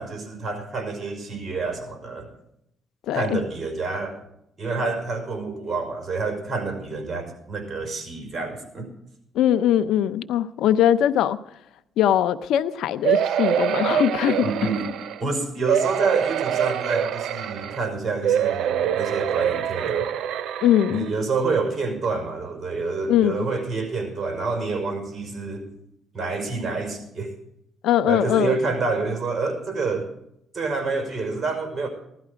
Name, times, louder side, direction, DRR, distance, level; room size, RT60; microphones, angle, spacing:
voice 1, 0.0-2.3 3.1-4.2 4.6-8.9 14.4-14.9 15.2-20.1 20.9-25.7 26.1-27.3 28.0-30.1 30.5-31.9, right 3 dB, 35° right, 4 dB, 5.3 m, -28 dB
voice 2, 3.1-3.4 9.3-11.4 12.0-14.5 20.6-21.1 23.1-23.5 27.8-28.6, left 10 dB, 85° left, 13 dB, 0.7 m, -21 dB
sound 1, 13.0-15.2 15.7-17.8 18.2-21.1 21.7-21.8 22.0-22.1, right 10 dB, 75° right, 0.7 m, -25 dB
16.5 x 12.5 x 5.2 m, 0.78 s
cardioid pair, 90°, 0 cm